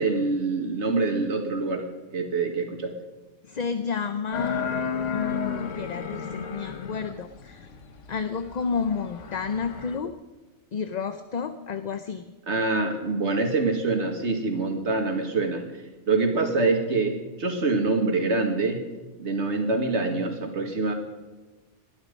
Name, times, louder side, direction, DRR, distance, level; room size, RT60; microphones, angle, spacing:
voice 1, 0.0-1.9 2.1-2.9 12.5-15.6 16.1-18.8 19.2-20.9, right 3 dB, 70° right, 4 dB, 2.2 m, -25 dB
voice 2, 3.5-4.7 5.1-7.7 8.1-10.2 10.7-12.2, left 5 dB, 45° left, 10 dB, 0.7 m, -31 dB
sound 1, 4.3-10.0, left 6 dB, 90° left, 1.5 m, -33 dB
20.0 x 12.0 x 5.3 m, 1.2 s
omnidirectional pair, 1.2 m